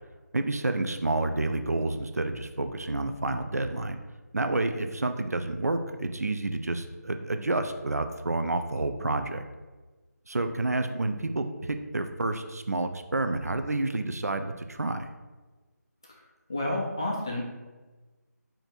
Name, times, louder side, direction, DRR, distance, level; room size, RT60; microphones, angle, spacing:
voice 1, 0.3-4.0 4.3-9.4 10.3-15.1, right 2 dB, 60° right, 8 dB, 0.4 m, -29 dB
voice 2, 16.1-17.4, left 1 dB, 15° left, -3 dB, 0.3 m, -31 dB
4.4 x 2.6 x 4.1 m, 1.3 s
figure-of-eight pair, 160°, 9 cm